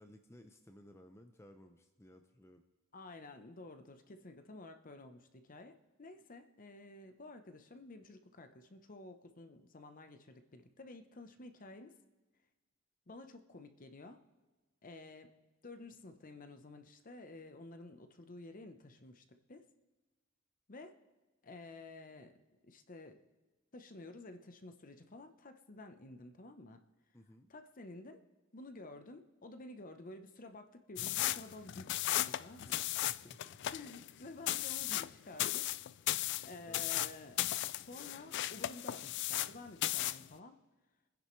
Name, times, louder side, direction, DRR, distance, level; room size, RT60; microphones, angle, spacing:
voice 1, 0.0-2.6 27.1-27.5 32.6-33.6 36.7-37.1, left 1 dB, 15° left, 5 dB, 0.6 m, -58 dB
voice 2, 2.9-11.9 13.1-14.2 14.8-15.3 15.6-19.7 20.7-20.9 21.4-22.3 22.6-23.2 23.7-26.8 27.5-28.2 28.5-32.9 33.7-35.7 36.4-37.4 37.7-40.6, left 2 dB, 40° left, 8 dB, 0.9 m, -52 dB
sound 1, 31.0-39.6 39.8-40.3, left 14 dB, 60° left, 0.3 m, -36 dB
24.0 x 10.0 x 3.2 m, 1.2 s
head